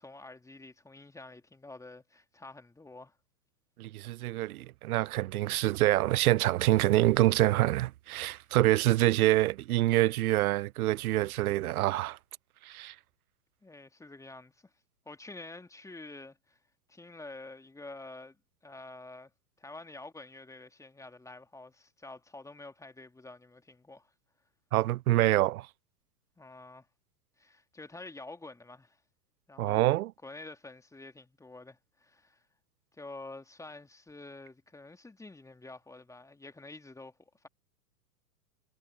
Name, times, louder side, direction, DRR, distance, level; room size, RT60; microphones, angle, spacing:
voice 1, 0.0-3.2 13.6-14.6 15.1-16.6 16.9-18.4 18.6-19.3 19.6-24.1 26.4-26.9 27.4-29.0 29.5-29.9 30.2-32.4 33.0-37.5, left 2 dB, 5° left, 2.4 m, -48 dB
voice 2, 3.8-12.2 12.6-12.9 24.7-25.7 29.6-30.1, right 16 dB, 60° right, 0.6 m, -26 dB
hypercardioid pair, 105°, 49 cm